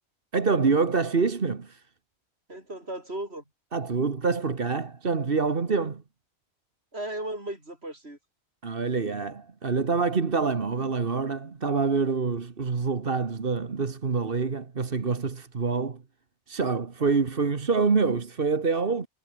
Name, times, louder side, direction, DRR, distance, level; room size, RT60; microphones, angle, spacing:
voice 1, 0.3-1.8 3.7-6.0 8.6-16.0 16.5-19.1, right 4 dB, 60° right, 1.7 m, -26 dB
voice 2, 2.5-3.4 6.9-8.2 17.0-17.1, right 1 dB, 75° right, 7.4 m, -36 dB
omnidirectional pair, 1.1 m